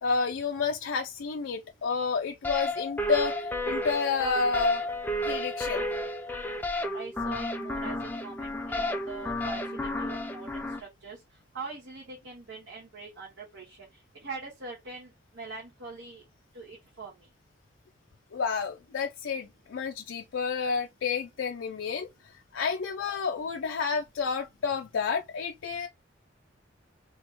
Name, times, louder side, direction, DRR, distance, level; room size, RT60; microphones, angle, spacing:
voice 1, 0.0-4.9 5.3-5.8 18.3-22.1 22.5-25.9, left 5 dB, 90° left, 0.4 m, -30 dB
sound 1, 2.4-10.8, left 1 dB, 10° left, 0.4 m, -32 dB
voice 2, 6.9-11.2 11.5-13.8 14.2-16.2 16.5-17.1, right 4 dB, 90° right, 1.4 m, -43 dB
3.5 x 2.9 x 2.9 m
head